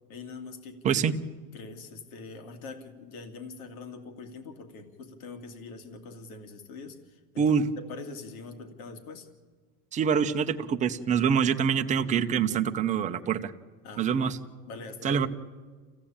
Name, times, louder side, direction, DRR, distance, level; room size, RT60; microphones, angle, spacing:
voice 1, 0.1-1.0 1.5-7.4 7.8-9.3 13.8-14.3 14.7-15.3, left 4 dB, 65° left, 6 dB, 2.8 m, -43 dB
voice 2, 0.8-1.2 7.4-7.7 9.9-13.5 14.0-14.4 15.0-15.3, right 7 dB, 15° right, 6 dB, 0.8 m, -25 dB
28.5 x 16.0 x 8.8 m, 1.5 s
supercardioid pair, 160°, 46 cm